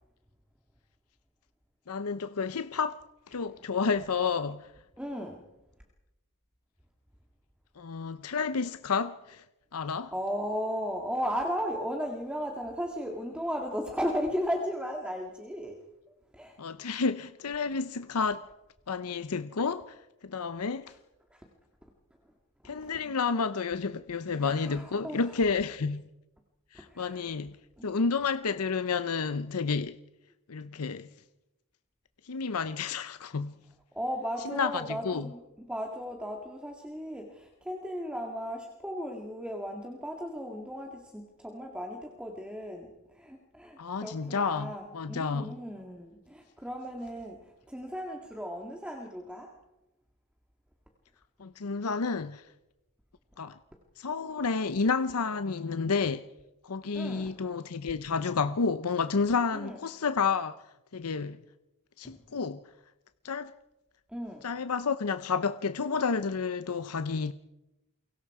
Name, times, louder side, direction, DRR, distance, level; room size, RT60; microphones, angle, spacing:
voice 1, 1.9-3.0 3.3-4.7 7.8-9.4 9.7-10.1 16.6-18.4 18.9-20.0 20.2-20.9 22.6-26.1 26.7-27.6 27.8-30.0 30.5-31.1 32.2-33.5 34.6-35.3 43.8-45.5 51.4-52.4 53.4-53.6 54.0-56.2 56.6-60.6 60.9-61.4 62.0-62.6 63.2-63.5 64.4-67.3, left 5 dB, 80° left, 0.7 m, -30 dB
voice 2, 5.0-5.4 10.1-16.6 20.9-21.0 21.3-21.5 21.8-21.9 22.2-22.3 22.6-23.0 24.4-25.4 26.7-27.3 27.8-27.9 33.9-49.6 56.9-57.3 59.5-59.8 62.0-62.2 64.1-64.5, equal, 5° right, 2.0 m, -36 dB
29.0 x 23.5 x 4.9 m
head